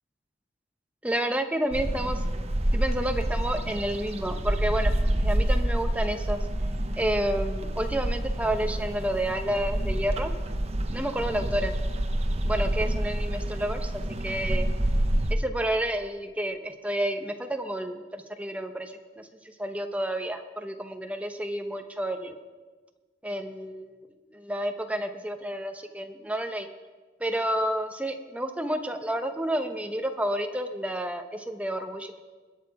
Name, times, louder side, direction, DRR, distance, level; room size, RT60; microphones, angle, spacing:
voice 1, 1.0-2.2 2.7-4.9 5.2-6.5 7.0-10.3 10.9-11.7 12.4-14.7 15.3-19.3 19.6-22.3 23.2-26.7 27.2-32.2, right 1 dB, 10° right, 6 dB, 0.9 m, -30 dB
sound 1, 1.7-15.3, right 1 dB, 35° right, 0.9 m, -28 dB
21.0 x 8.3 x 4.8 m, 1.3 s
head